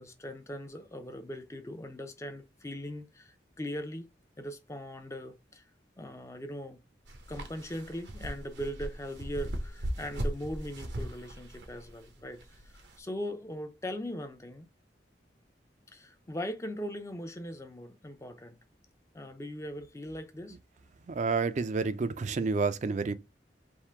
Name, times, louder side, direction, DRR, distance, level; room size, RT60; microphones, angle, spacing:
voice 1, 0.0-4.1 4.4-5.6 6.0-6.8 7.3-14.7 15.9-18.6 19.1-20.6, equal, 15° left, 0.5 m, -40 dB
sound 1, 7.1-13.0, equal, 80° right, 0.8 m, -38 dB
voice 2, 21.1-23.1, right 4 dB, 45° right, 0.4 m, -29 dB
3.6 x 2.6 x 4.4 m
head